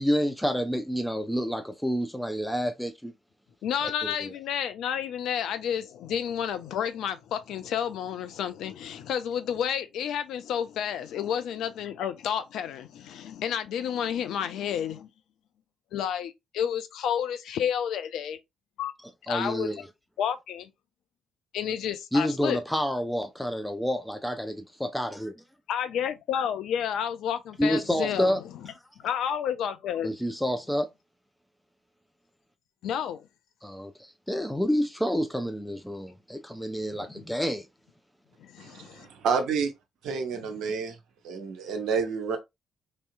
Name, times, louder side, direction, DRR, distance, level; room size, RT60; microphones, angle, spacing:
voice 1, 0.0-3.1 4.0-4.3 19.0-19.8 22.1-25.4 27.6-28.4 30.0-30.9 33.6-37.7, equal, 5° left, 0.5 m, -29 dB
voice 2, 3.6-15.1 15.9-18.4 18.8-18.9 19.3-19.7 20.2-20.7 21.5-22.6 25.7-28.4 29.0-30.1 32.8-33.3 37.1-37.2 38.4-39.1 40.3-40.7, left 9 dB, 60° left, 0.4 m, -30 dB
voice 3, 38.6-39.7 40.0-40.9 41.2-42.4, right 5 dB, 60° right, 0.7 m, -29 dB
3.3 x 2.7 x 2.4 m
figure-of-eight pair, 40°, 0 cm